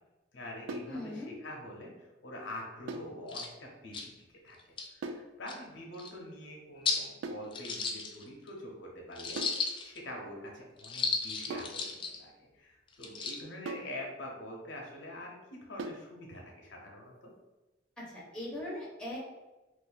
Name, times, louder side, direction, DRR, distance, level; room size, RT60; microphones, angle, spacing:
voice 1, 0.3-4.1 4.4-4.6 4.9-9.4 9.8-17.3, left 1 dB, 70° left, -1 dB, 0.7 m, -45 dB
sound 1, 0.7-1.0 2.9-3.2 5.0-5.3 7.2-7.5 9.4-9.7 11.5-11.8 13.7-14.0 15.8-16.1, right 2 dB, 80° right, 0.3 m, -40 dB
voice 2, 0.9-1.3 18.1-19.2, left 1 dB, 5° left, -6 dB, 0.9 m, -40 dB
sound 2, 2.9-3.0 3.3-3.5 3.9-4.1 4.6-4.9 5.5-5.6 6.0-6.1 6.9-7.1 7.5-8.5 9.2-10.0 10.8-12.2 12.9-13.4, left 4 dB, 25° left, 0.3 m, -34 dB
2.6 x 2.5 x 3.9 m, 1.1 s
head